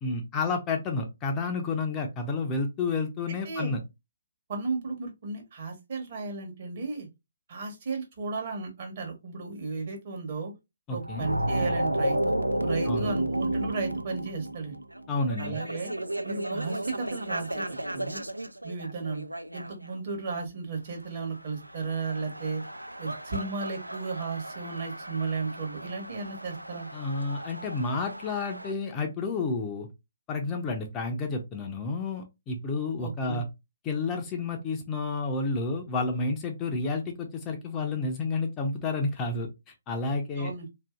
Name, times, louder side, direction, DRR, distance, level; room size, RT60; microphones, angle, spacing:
voice 1, 0.0-3.8 10.9-11.3 12.9-13.1 15.1-15.6 26.9-29.9 30.3-33.4 33.8-39.5 39.9-40.5, left 3 dB, 20° left, 3 dB, 0.5 m, -30 dB
voice 2, 4.5-7.1 7.5-10.5 10.9-14.8 15.4-15.9 16.2-18.2 18.6-19.2 19.5-22.6 23.0-26.9 33.0-33.4 40.4-40.7, right 4 dB, 40° right, 2 dB, 1.0 m, -34 dB
sound 1, 11.0-19.9 21.3-28.7, right 1 dB, 90° right, 0.3 m, -33 dB
2.7 x 2.6 x 2.3 m, 0.22 s
figure-of-eight pair, 140°, 0 cm